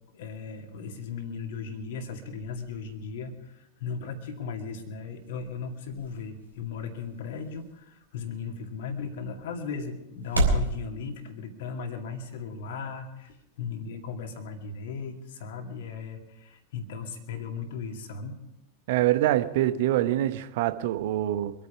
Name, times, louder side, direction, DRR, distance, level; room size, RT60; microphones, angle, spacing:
voice 1, 0.1-18.4, left 5 dB, 55° left, 4 dB, 2.2 m, -37 dB
sound 1, 4.4-10.7, right 1 dB, 80° right, 3.5 m, -33 dB
voice 2, 18.9-21.5, right 14 dB, 50° right, 11 dB, 0.9 m, -25 dB
25.0 x 9.4 x 4.9 m, 0.89 s
figure-of-eight pair, 90°, 0 cm